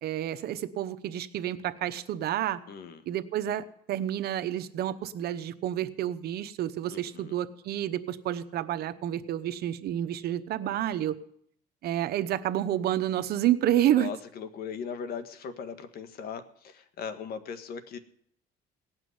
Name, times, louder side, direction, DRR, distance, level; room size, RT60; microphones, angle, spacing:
voice 1, 0.0-2.6 3.1-11.2 11.8-14.1, right 12 dB, 70° right, 10 dB, 0.9 m, -29 dB
voice 2, 2.7-3.0 6.9-7.4 13.9-18.0, left 6 dB, 65° left, 10 dB, 1.5 m, -39 dB
18.0 x 6.0 x 9.5 m, 0.66 s
cardioid pair, 110°, 17 cm